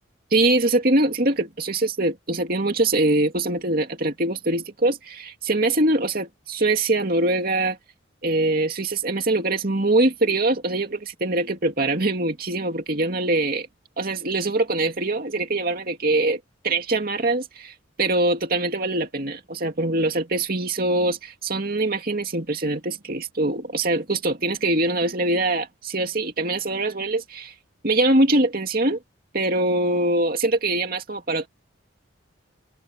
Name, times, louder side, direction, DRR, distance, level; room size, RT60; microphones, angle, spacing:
voice 1, 0.3-7.8 8.2-13.7 14.0-27.5 27.8-29.0 29.3-31.5, right 2 dB, 45° right, 2.5 m, -23 dB
open air
head